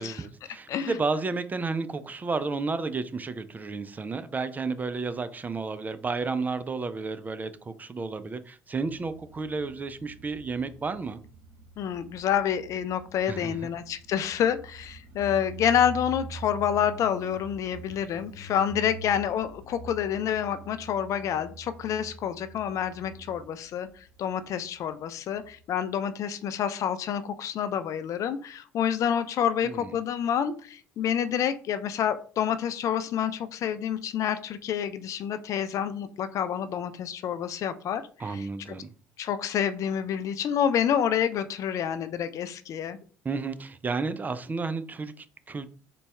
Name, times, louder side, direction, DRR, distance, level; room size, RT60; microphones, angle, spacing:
voice 1, 0.0-11.2 13.3-13.6 29.6-29.9 38.2-38.9 43.2-45.7, right 4 dB, 25° right, 0.4 m, -32 dB
Motorcycle, 8.7-25.9, right 3 dB, 65° right, 0.8 m, -46 dB
voice 2, 11.8-38.0 38.3-38.5 39.2-43.0, left 9 dB, 50° left, 0.3 m, -28 dB
4.0 x 2.2 x 3.3 m
hypercardioid pair, 55°, 7 cm